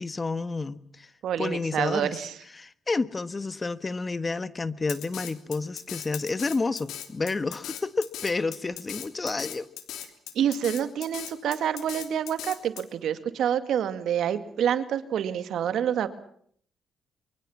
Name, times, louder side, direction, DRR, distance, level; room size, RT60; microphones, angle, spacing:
voice 1, 0.0-1.1 1.4-2.2 2.5-9.7, left 3 dB, 30° left, 15 dB, 1.3 m, -30 dB
voice 2, 1.2-2.3 10.3-16.1, right 9 dB, 75° right, 11 dB, 2.2 m, -27 dB
Drum kit, 4.9-12.8, left 11 dB, 85° left, 3.1 m, -38 dB
24.0 x 24.0 x 7.3 m, 0.63 s
cardioid pair, 80°, 0 cm